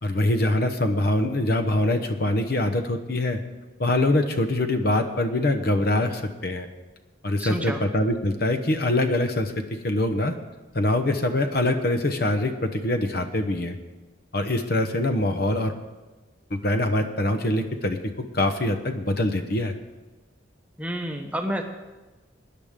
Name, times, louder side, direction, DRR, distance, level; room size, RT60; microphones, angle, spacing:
voice 1, 0.0-3.4 3.8-6.7 7.2-10.3 10.7-13.8 14.3-15.7 16.6-18.0 18.3-19.7, left 1 dB, 50° left, 7 dB, 1.0 m, -24 dB
voice 2, 7.4-7.8 20.8-21.6, equal, 5° right, 3 dB, 0.9 m, -29 dB
20.0 x 10.0 x 3.7 m, 1.2 s
head